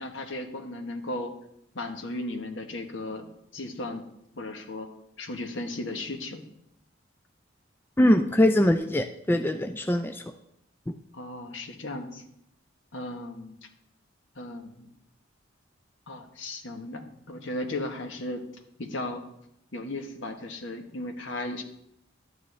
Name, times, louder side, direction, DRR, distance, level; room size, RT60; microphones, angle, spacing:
voice 1, 0.0-1.3 1.7-4.0 4.4-4.9 5.2-6.4 11.1-12.2 12.9-13.6 14.3-14.9 16.1-18.4 18.8-19.2 19.7-21.6, left 2 dB, 70° left, 5 dB, 1.2 m, -36 dB
voice 2, 8.0-10.2 10.9-11.0, left 1 dB, 10° left, 6 dB, 0.3 m, -22 dB
12.0 x 9.4 x 3.3 m, 0.76 s
head